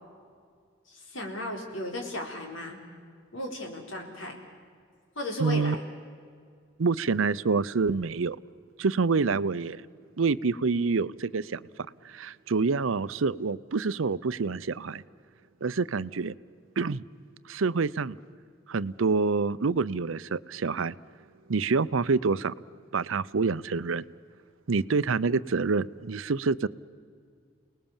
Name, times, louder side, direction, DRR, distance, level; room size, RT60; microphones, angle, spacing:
voice 1, 0.9-2.8 3.3-4.4 5.2-5.8, left 1 dB, 80° left, 2 dB, 4.1 m, -35 dB
voice 2, 5.4-5.8 6.8-8.4 8.8-9.8 10.2-11.6 12.0-15.0 15.6-16.3 16.8-17.0 17.5-18.2 18.7-20.9 21.5-22.5 22.9-24.0 24.7-26.7, right 4 dB, 85° right, 17 dB, 0.6 m, -27 dB
29.5 x 19.5 x 7.3 m, 2.1 s
head